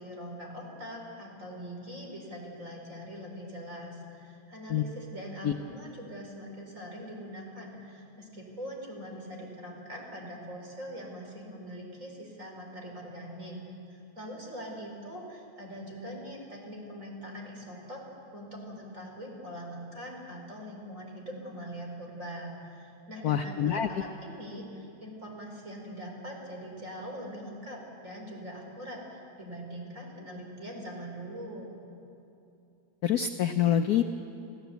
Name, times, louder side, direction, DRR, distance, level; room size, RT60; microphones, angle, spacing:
voice 1, 0.0-13.5 13.9-18.0 18.3-31.7, equal, 40° right, 0 dB, 4.6 m, -42 dB
voice 2, 23.2-24.0 33.0-34.0, left 9 dB, 65° left, 7 dB, 1.0 m, -26 dB
27.5 x 16.0 x 8.1 m, 2.7 s
omnidirectional pair, 2.2 m